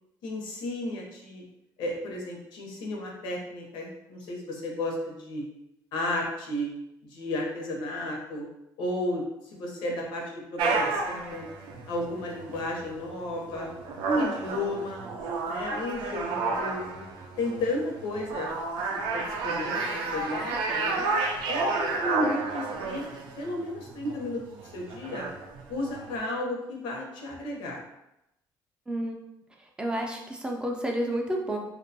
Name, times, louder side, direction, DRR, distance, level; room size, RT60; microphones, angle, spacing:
voice 1, 0.2-1.4 1.8-5.4 5.9-6.7 7.1-8.5 8.8-11.5 11.9-13.7 14.0-15.1 15.4-17.0 17.4-18.5 18.9-21.0 21.5-23.1 23.4-25.3 25.7-27.8, left 1 dB, 90° left, 0 dB, 0.7 m, -33 dB
sound 1, 10.6-26.2, right 3 dB, 90° right, 0.4 m, -32 dB
voice 2, 28.9-29.2 29.8-31.6, right 1 dB, 10° right, 1 dB, 0.3 m, -30 dB
2.6 x 2.2 x 2.6 m, 0.87 s
cardioid pair, 135°, 8 cm